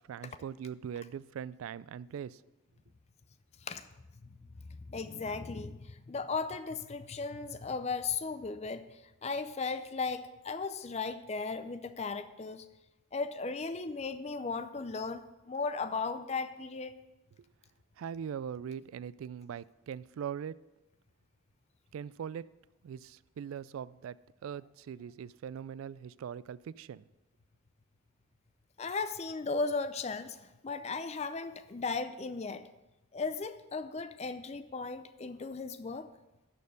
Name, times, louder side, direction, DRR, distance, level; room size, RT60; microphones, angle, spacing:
voice 1, 0.1-2.4 18.0-20.6 21.9-22.5 22.8-24.2 24.4-27.0, right 8 dB, 90° right, 20 dB, 0.3 m, -41 dB
voice 2, 4.9-5.8 6.1-8.8 9.2-12.6 13.1-16.9 28.8-30.4 30.6-32.6 33.1-36.1, left 4 dB, 30° left, 11 dB, 0.5 m, -36 dB
12.5 x 4.3 x 6.4 m, 0.99 s
head